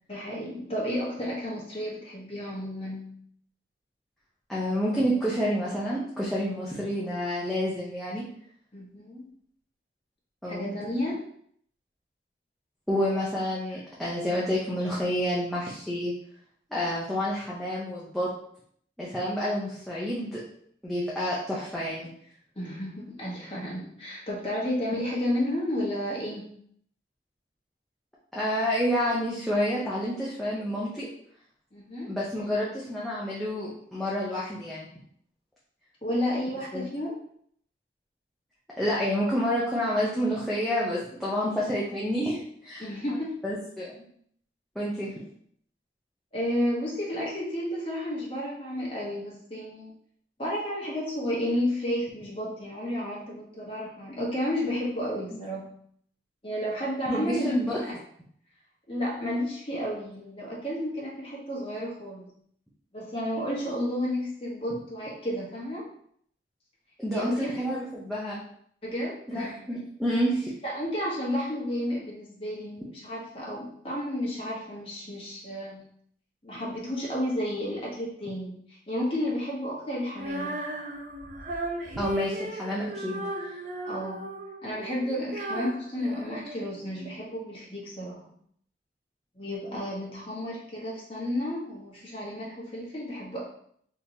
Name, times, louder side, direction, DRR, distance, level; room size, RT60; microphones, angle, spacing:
voice 1, 0.1-3.2 8.7-9.3 10.5-11.2 22.6-26.5 31.7-32.1 36.0-37.2 42.8-43.4 46.3-49.9 50.4-55.7 56.4-58.0 58.9-62.2 62.9-65.9 67.1-67.6 68.8-69.6 70.6-75.9 76.4-80.6 83.8-84.3 84.6-88.3 89.3-93.4, left 1 dB, 30° left, -5 dB, 1.0 m, -32 dB
voice 2, 4.5-8.2 10.4-10.7 12.9-16.1 16.7-18.3 19.0-20.4 20.8-22.1 28.3-31.1 32.1-34.9 36.7-36.9 38.8-42.8 43.4-43.9 44.8-45.1 55.3-55.4 57.1-57.8 67.0-68.4 69.3-70.5 82.0-83.6, equal, ahead, -8 dB, 0.6 m, -29 dB
Female singing, 80.1-87.2, right 1 dB, 45° right, 0.5 m, -36 dB
3.7 x 2.9 x 2.7 m, 0.64 s
head